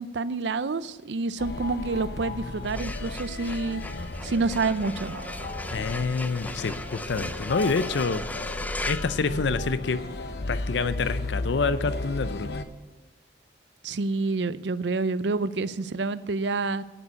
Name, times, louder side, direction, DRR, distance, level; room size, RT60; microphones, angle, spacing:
voice 1, 0.0-3.8 4.2-5.1 13.8-16.8, right 3 dB, 75° right, 15 dB, 0.5 m, -28 dB
sound 1, 1.4-12.6, left 2 dB, 60° left, 0.9 m, -34 dB
sound 2, 2.5-10.0, left 2 dB, 10° left, 0.4 m, -38 dB
sound 3, 5.0-9.1, right 2 dB, 40° right, 0.8 m, -49 dB
voice 2, 5.7-8.3 8.8-10.0 10.5-12.5, left 4 dB, 75° left, 14 dB, 0.5 m, -27 dB
10.5 x 7.0 x 8.6 m, 1.2 s
head